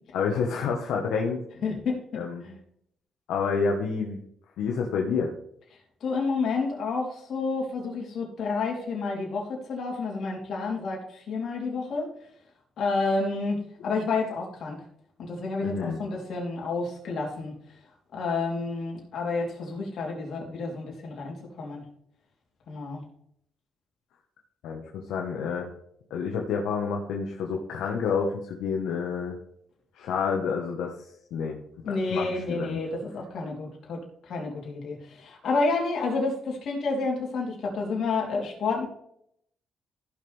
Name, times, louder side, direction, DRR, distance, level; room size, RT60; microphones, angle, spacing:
voice 1, 0.1-1.4 2.1-2.4 3.3-4.2 4.6-5.3 15.6-16.0 24.6-25.7 26.1-29.3 29.9-30.9 31.3-32.8, left 5 dB, 85° left, 0 dB, 1.3 m, -29 dB
voice 2, 1.6-2.5 6.0-12.1 12.8-14.8 15.3-17.5 18.1-21.8 22.7-23.0 31.8-34.0 34.3-38.9, left 3 dB, 65° left, -1 dB, 3.4 m, -30 dB
15.0 x 6.3 x 3.5 m, 0.71 s
cardioid pair, 90°, 0 cm